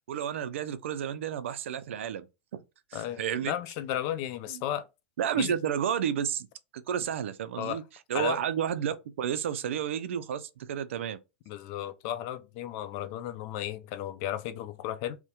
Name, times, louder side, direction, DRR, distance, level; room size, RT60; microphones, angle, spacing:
voice 1, 0.1-2.3 2.5-2.6 2.9-3.6 4.5-4.6 5.2-6.5 6.7-7.8 8.1-11.2, right 9 dB, 80° right, 0.3 m, -31 dB
voice 2, 2.9-4.9 5.3-5.5 7.6-7.8 8.1-8.4 11.5-15.2, left 11 dB, 55° left, 0.4 m, -34 dB
2.7 x 2.1 x 2.2 m
hypercardioid pair, 100°, 7 cm